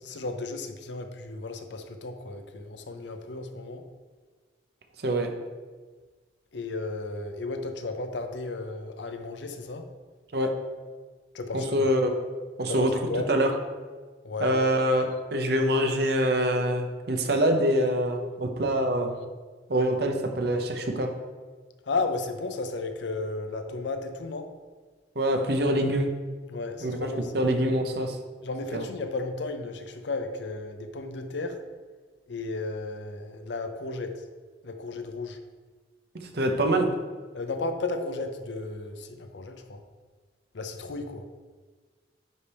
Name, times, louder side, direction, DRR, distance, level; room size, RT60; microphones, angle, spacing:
voice 1, 0.0-3.8 6.5-9.8 11.3-11.9 12.7-13.3 14.2-14.6 21.9-24.5 26.5-27.5 28.4-31.6 32.3-34.2 34.6-35.4 37.3-39.8 40.5-41.2, left 3 dB, 75° left, 7 dB, 0.6 m, -34 dB
voice 2, 5.0-5.3 10.3-10.5 11.5-12.1 12.6-12.9 13.3-13.5 14.4-19.2 19.7-21.1 25.2-26.1 26.8-28.2 28.7-28.8 36.2-36.9, right 1 dB, 60° right, 4 dB, 0.8 m, -25 dB
9.8 x 4.3 x 3.5 m, 1.4 s
head